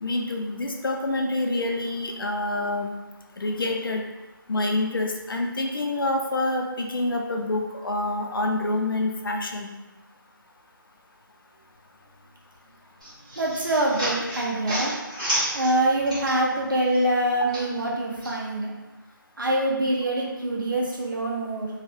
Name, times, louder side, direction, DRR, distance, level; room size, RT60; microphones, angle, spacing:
voice 1, 0.0-2.9 3.4-4.0 4.5-9.7, left 2 dB, 70° left, 2 dB, 0.4 m, -27 dB
sound 1, 13.0-16.6 16.9-18.3, right 1 dB, 15° right, 0.9 m, -31 dB
voice 2, 13.4-14.9 15.5-18.7 19.4-21.7, right 1 dB, 65° right, -3 dB, 0.7 m, -25 dB
3.2 x 2.1 x 2.6 m, 1.1 s
figure-of-eight pair, 180°, 12 cm